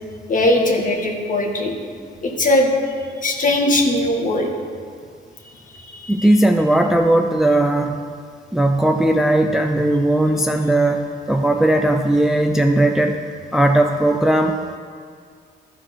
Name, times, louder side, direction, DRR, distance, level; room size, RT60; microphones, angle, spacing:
voice 1, 0.3-1.7 2.2-2.7 3.2-4.5 5.7-6.3, left 1 dB, 40° left, 0 dB, 1.8 m, -19 dB
voice 2, 6.1-8.0 8.5-13.2 13.5-14.8, right 1 dB, ahead, 5 dB, 0.5 m, -17 dB
14.0 x 4.8 x 6.0 m, 2.1 s
cardioid pair, 90°, 20 cm